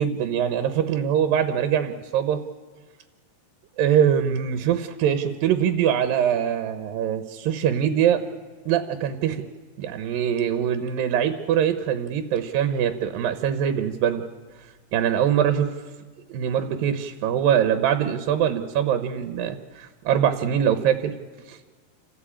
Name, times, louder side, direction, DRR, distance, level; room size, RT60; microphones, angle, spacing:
voice 1, 0.0-2.4 3.8-8.2 8.7-9.4 9.8-14.2 14.9-15.7 16.3-21.1 21.5-21.6, right 9 dB, 70° right, 9 dB, 2.3 m, -23 dB
28.0 x 15.0 x 8.7 m, 1.4 s
omnidirectional pair, 4.8 m